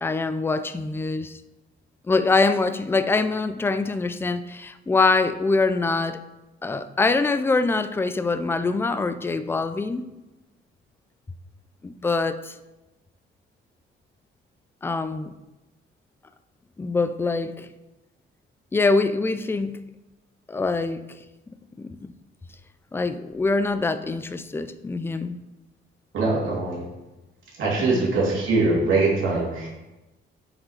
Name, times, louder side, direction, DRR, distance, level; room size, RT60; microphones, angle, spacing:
voice 1, 0.0-1.4 2.1-6.2 6.6-10.0 11.8-12.6 14.8-15.3 16.8-17.7 18.7-19.8 20.5-21.0 21.8-22.1 22.9-25.4 27.8-28.1, left 3 dB, 10° left, 11 dB, 0.3 m, -24 dB
voice 2, 26.1-26.8 27.6-29.7, right 3 dB, 75° right, -5 dB, 2.6 m, -22 dB
7.5 x 4.9 x 5.0 m, 1.0 s
wide cardioid pair, 165°, 21 cm